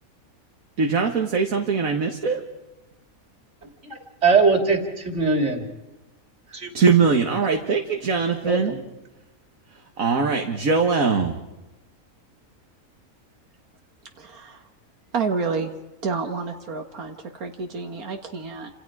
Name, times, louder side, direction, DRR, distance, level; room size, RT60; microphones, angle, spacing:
voice 1, 0.8-2.4 6.7-8.7 10.0-11.4, right 5 dB, 70° right, 3 dB, 2.0 m, -21 dB
voice 2, 3.8-5.7 6.5-6.7 7.4-7.5 8.4-8.8, right 4 dB, 55° right, 4 dB, 3.2 m, -21 dB
voice 3, 14.2-14.7 15.1-15.7 16.0-18.7, right 4 dB, 85° right, 3 dB, 2.1 m, -29 dB
29.5 x 27.0 x 4.9 m, 1.1 s
omnidirectional pair, 1.5 m